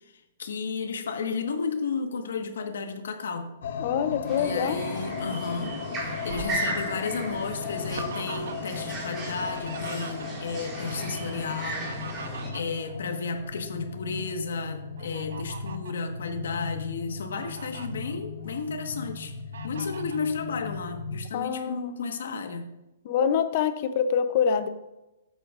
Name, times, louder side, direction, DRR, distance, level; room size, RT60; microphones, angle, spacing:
voice 1, 0.4-3.5 4.4-11.9 12.5-19.3 19.6-22.7, left 4 dB, 75° left, 6 dB, 1.4 m, -33 dB
sound 1, 3.6-21.3, left 6 dB, 60° left, 0.9 m, -37 dB
voice 2, 3.8-4.8 21.3-21.9 23.0-24.7, left 7 dB, 35° left, 11 dB, 0.6 m, -25 dB
sound 2, 4.3-12.5, right 2 dB, 15° right, 2.1 m, -36 dB
Fowl, 5.5-8.8 9.1-10.6 11.6-13.7 14.1-14.3 15.0-16.0 16.6-16.7 17.1-17.9 18.4-19.1 19.5-20.3, right 5 dB, 70° right, 0.9 m, -43 dB
13.5 x 8.1 x 2.5 m, 0.96 s
hypercardioid pair, 175°, 0 cm